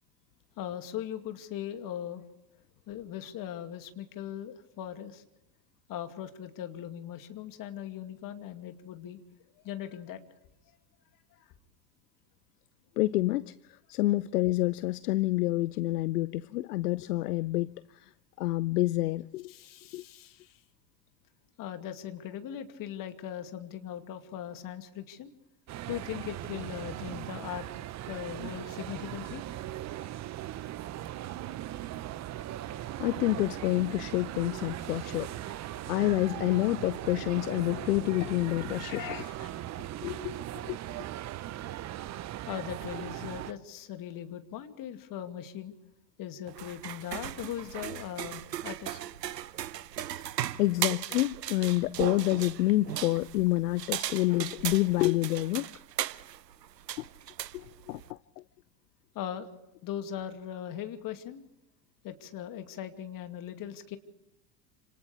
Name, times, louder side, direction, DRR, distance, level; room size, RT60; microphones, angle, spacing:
voice 1, 0.6-2.2 2.9-5.2 5.9-9.2 9.6-10.2 19.5-20.6 21.6-25.3 25.9-27.7 28.1-29.4 38.9-39.6 42.5-45.7 46.2-49.0 59.1-59.5 59.8-61.4 62.0-64.0, left 10 dB, 40° left, 2.5 m, -39 dB
voice 2, 13.0-13.5 13.9-18.1 18.4-19.5 19.9-20.0 33.0-39.0 40.0-40.4 40.6-40.8 50.6-55.7 57.0-57.1 57.5-58.2, left 18 dB, 70° left, 0.7 m, -28 dB
sound 1, 25.7-43.5, right 13 dB, 35° right, 1.0 m, -39 dB
sound 2, 46.5-58.1, right 11 dB, 85° right, 0.9 m, -37 dB
29.0 x 27.5 x 3.4 m
hypercardioid pair, 85°, 49 cm